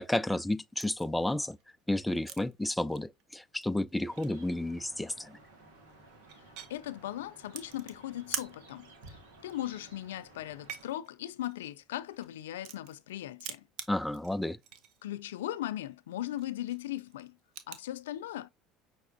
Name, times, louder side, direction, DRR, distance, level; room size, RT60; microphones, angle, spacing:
voice 1, 0.0-1.6 1.9-5.4 13.9-14.6, left 1 dB, 5° left, 0.4 m, -31 dB
sound 1, 0.8-1.1 1.5-2.5 2.8-3.2 3.5-3.6 3.9-4.4 5.5-5.6 5.9-6.7 7.5-8.5 8.9-9.1 9.4-10.0 10.5-13.1 13.4-15.0 15.3-15.4 15.8-16.0 16.4-17.9, right 10 dB, 65° right, 0.8 m, -44 dB
sound 2, 4.1-10.9, right 2 dB, 85° right, 1.6 m, -56 dB
voice 2, 6.7-13.6 15.0-17.3 17.7-18.5, left 13 dB, 90° left, 0.3 m, -38 dB
5.9 x 3.5 x 2.6 m
hypercardioid pair, 85°, 0 cm